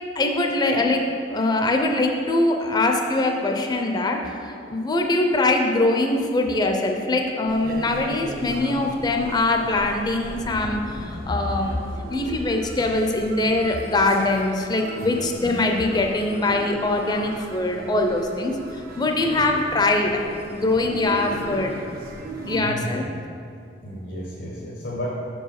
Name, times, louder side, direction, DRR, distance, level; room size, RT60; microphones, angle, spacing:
voice 1, 0.1-11.8 12.1-20.2 20.5-21.8 22.5-23.1, left 2 dB, 20° left, 3 dB, 0.5 m, -23 dB
sound 1, 7.5-22.6, right 1 dB, 50° right, 0.7 m, -37 dB
voice 2, 22.5-23.1 23.8-25.1, equal, 85° left, -5 dB, 1.1 m, -32 dB
6.5 x 4.6 x 5.8 m, 2.4 s
head